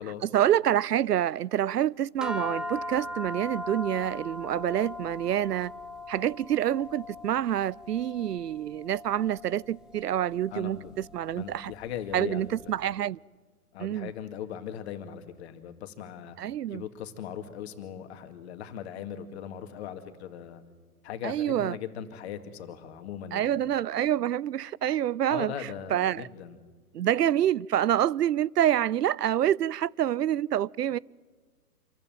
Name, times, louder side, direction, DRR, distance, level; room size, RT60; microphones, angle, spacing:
voice 1, 0.2-5.7 6.1-11.7 12.1-13.2 13.8-14.1 16.4-16.8 21.2-21.7 23.3-25.5 25.9-26.3 26.9-31.0, right 11 dB, 85° right, 0.6 m, -27 dB
sound 1, 2.2-12.7, left 1 dB, ahead, 1.0 m, -40 dB
voice 2, 10.5-11.0 11.3-12.5 13.7-16.4 16.7-20.6 21.0-23.6 25.3-26.6, left 9 dB, 45° left, 2.3 m, -39 dB
26.5 x 14.5 x 8.9 m
hypercardioid pair, 135°, 46 cm